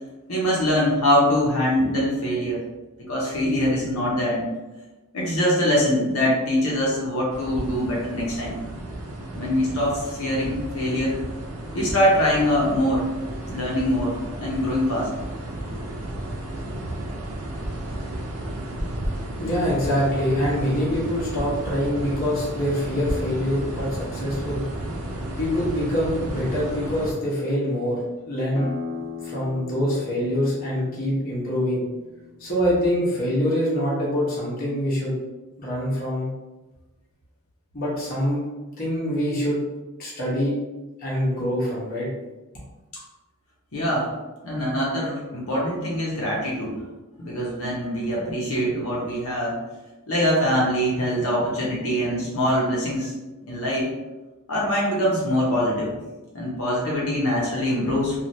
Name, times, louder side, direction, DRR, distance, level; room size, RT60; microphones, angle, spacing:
voice 1, 0.3-2.6 3.0-4.4 5.1-8.6 9.3-11.1 11.7-13.1 13.5-15.1 43.7-44.2 44.4-46.8 47.2-49.6 50.1-53.1 53.5-53.9 54.5-55.9 56.3-58.2, equal, 75° left, -5 dB, 0.8 m, -23 dB
sound 1, 7.3-27.1, right 1 dB, 75° right, 0.7 m, -33 dB
voice 2, 19.4-24.6 25.4-28.0 28.3-28.7 29.2-31.9 32.4-35.2 35.6-36.3 37.7-38.4 38.8-39.6 40.0-40.6 41.0-42.1, equal, 45° left, -6 dB, 0.9 m, -25 dB
sound 2, 28.5-33.9, left 4 dB, 25° left, 0.4 m, -39 dB
3.2 x 2.4 x 2.6 m, 1.1 s
head